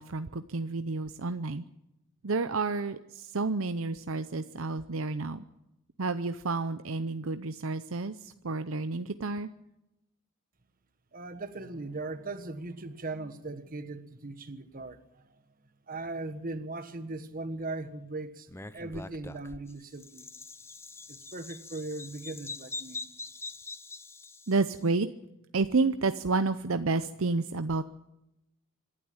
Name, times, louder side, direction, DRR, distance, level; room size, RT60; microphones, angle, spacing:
voice 1, 0.0-1.6 2.2-5.4 6.0-9.5 24.5-25.1 25.5-27.8, right 3 dB, 65° right, 0.7 m, -30 dB
voice 2, 11.1-15.2 15.9-18.5 18.7-20.3 21.1-23.0, right 2 dB, 40° right, 1.4 m, -39 dB
Bird vocalization bird call bird song, 18.5-24.8, left 3 dB, 10° left, 0.6 m, -43 dB
26.0 x 12.0 x 8.9 m
head